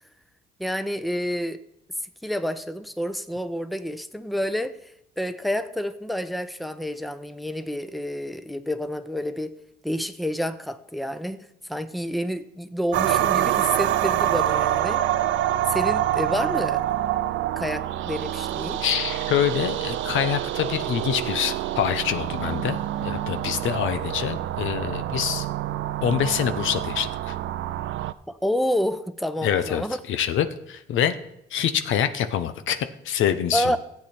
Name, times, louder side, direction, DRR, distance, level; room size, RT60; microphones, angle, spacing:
voice 1, 0.6-1.6 2.2-9.5 9.8-15.0 15.7-16.8 17.6-18.8 28.3-30.0 33.5-33.8, equal, ahead, 11 dB, 0.8 m, -29 dB
sound 1, 12.9-28.1, right 12 dB, 75° right, 0.5 m, -26 dB
voice 2, 18.8-25.5 26.0-27.4 29.4-31.2 31.5-33.8, left 9 dB, 80° left, 10 dB, 0.9 m, -25 dB
15.0 x 8.3 x 4.3 m, 0.80 s
cardioid pair, 90°, 20 cm